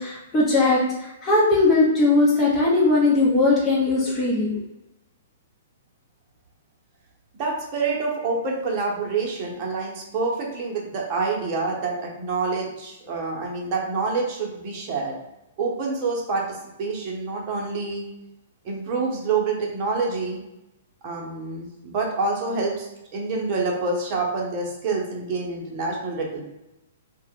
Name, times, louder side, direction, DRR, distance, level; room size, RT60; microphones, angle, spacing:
voice 1, 0.0-4.6, left 2 dB, 15° left, -7 dB, 0.9 m, -19 dB
voice 2, 7.3-15.2 15.6-18.0 18.6-20.4 21.0-22.9 23.1-26.4, right 4 dB, 40° right, -1 dB, 0.9 m, -27 dB
2.4 x 2.3 x 3.6 m, 0.91 s
hypercardioid pair, 125°, 0 cm